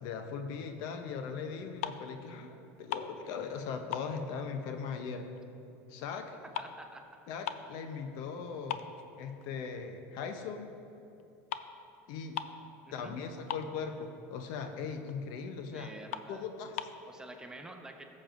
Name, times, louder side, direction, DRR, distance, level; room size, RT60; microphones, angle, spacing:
voice 1, 0.0-5.3 5.9-6.4 7.3-8.8 9.2-10.7 12.1-12.4 12.9-15.9 16.3-16.9, left 5 dB, 65° left, 6 dB, 0.7 m, -39 dB
sound 1, 1.8-2.2 2.5-3.6 3.9-5.4 5.7-7.8 8.2-8.3 8.7-9.8 10.2-10.4 11.2-11.3 11.5-11.7 12.0-12.1 12.3-12.7 13.0-13.1 13.3-14.1 14.6-14.7 15.1-15.2 15.6-15.7 16.1-17.0, left 10 dB, 85° left, 0.4 m, -40 dB
voice 2, 6.5-7.0 12.8-13.1 15.7-16.5 17.1-18.0, right 2 dB, 10° right, 3 dB, 0.9 m, -48 dB
14.5 x 7.3 x 2.6 m, 2.9 s
supercardioid pair, 105°, 7 cm